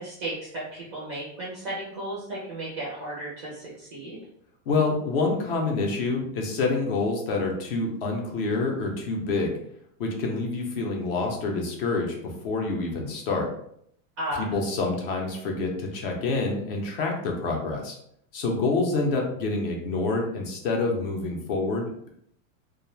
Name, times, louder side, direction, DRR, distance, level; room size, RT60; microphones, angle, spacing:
voice 1, 0.0-4.2 14.2-14.5, right 1 dB, 25° right, -7 dB, 0.3 m, -34 dB
voice 2, 4.7-9.6 10.0-13.5 14.4-18.0 18.3-22.1, left 3 dB, 45° left, 1 dB, 0.5 m, -27 dB
2.3 x 2.0 x 3.1 m, 0.69 s
supercardioid pair, 175°, 41 cm